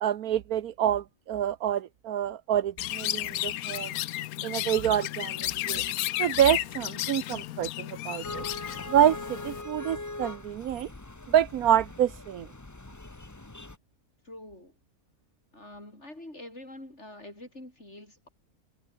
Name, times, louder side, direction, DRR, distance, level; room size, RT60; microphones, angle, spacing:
voice 1, 0.0-3.9 4.4-5.8 6.2-8.4 8.9-10.9 11.3-12.5, right 10 dB, 70° right, 1.2 m, -27 dB
Chirp tweet, 2.8-9.6, left 15 dB, 75° left, 1.0 m, -33 dB
sound 1, 8.2-13.8, left 2 dB, 15° left, 1.0 m, -41 dB
voice 2, 14.2-14.7 15.5-18.3, left 1 dB, 45° left, 7.8 m, -45 dB
omnidirectional pair, 1.6 m